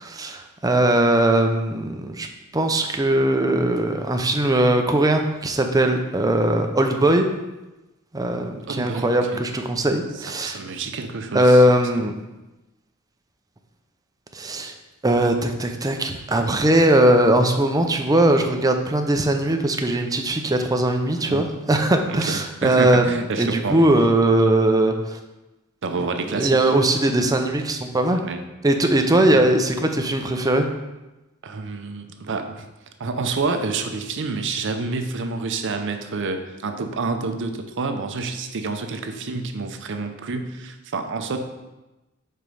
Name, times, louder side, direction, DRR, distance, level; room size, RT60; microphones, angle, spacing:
voice 1, 0.0-2.3 2.5-7.3 8.1-10.6 11.3-12.1 14.3-14.7 15.0-25.2 26.0-28.2 28.6-30.7, right 1 dB, 15° right, 5 dB, 0.5 m, -20 dB
voice 2, 8.7-9.4 10.4-11.6 21.2-21.4 22.1-23.9 25.8-26.7 28.2-28.4 29.3-29.4 31.4-32.6 33.0-41.4, right 3 dB, 60° right, 6 dB, 0.6 m, -28 dB
5.0 x 4.5 x 5.3 m, 1.0 s
head